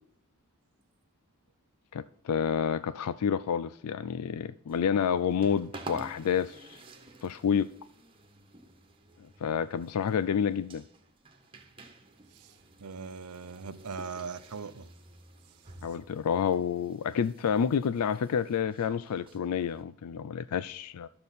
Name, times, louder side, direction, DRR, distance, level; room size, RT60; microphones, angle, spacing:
voice 1, 1.9-6.8 7.2-7.7 9.4-10.8 15.8-21.1, left 7 dB, 85° left, 0.4 m, -29 dB
sound 1, 4.7-19.8, right 2 dB, 25° right, 1.4 m, -51 dB
voice 2, 12.3-14.9, right 5 dB, 85° right, 0.7 m, -40 dB
13.0 x 6.7 x 4.1 m
head